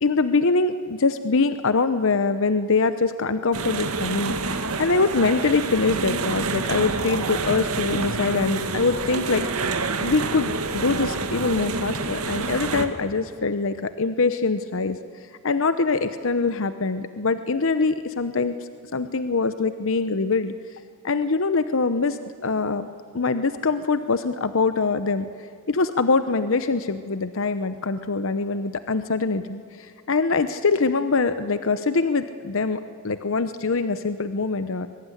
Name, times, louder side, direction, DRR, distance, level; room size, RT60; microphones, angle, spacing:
voice 1, 0.0-4.3 4.8-9.4 10.0-15.0 15.4-18.6 18.9-20.5 21.0-22.9 23.1-25.3 25.7-34.9, left 4 dB, 65° left, 11 dB, 0.8 m, -23 dB
sound 1, 3.5-12.9, right 3 dB, 85° right, 1.9 m, -27 dB
22.5 x 22.0 x 9.9 m, 2.3 s
head